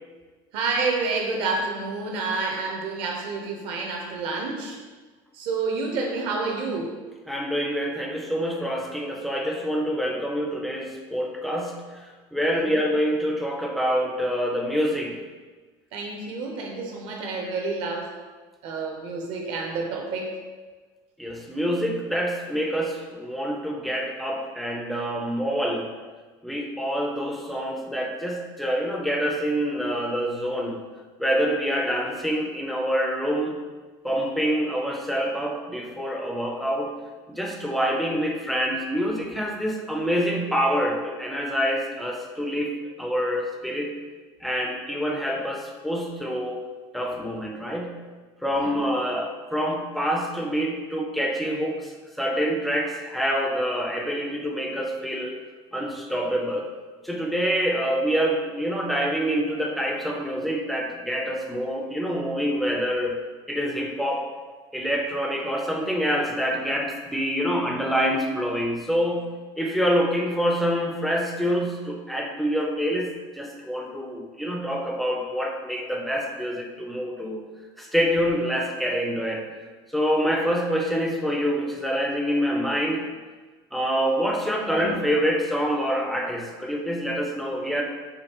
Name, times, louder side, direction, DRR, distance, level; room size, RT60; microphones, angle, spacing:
voice 1, 0.5-4.8 5.3-6.9 12.5-12.7 15.9-18.1 18.6-20.4 48.6-48.8 84.6-85.0, right 3 dB, 55° right, 1 dB, 0.8 m, -29 dB
voice 2, 7.3-15.2 21.2-25.9 26.4-30.8 31.2-33.6 34.0-36.9 37.3-42.7 43.0-43.9 44.4-46.6 46.9-48.0 48.4-55.4 55.7-56.7 57.0-63.2 63.5-64.3 64.7-77.4 77.8-79.5 79.9-83.0 83.7-87.8, equal, ahead, 0 dB, 0.3 m, -26 dB
5.0 x 3.1 x 2.9 m, 1.4 s
cardioid pair, 180°, 11 cm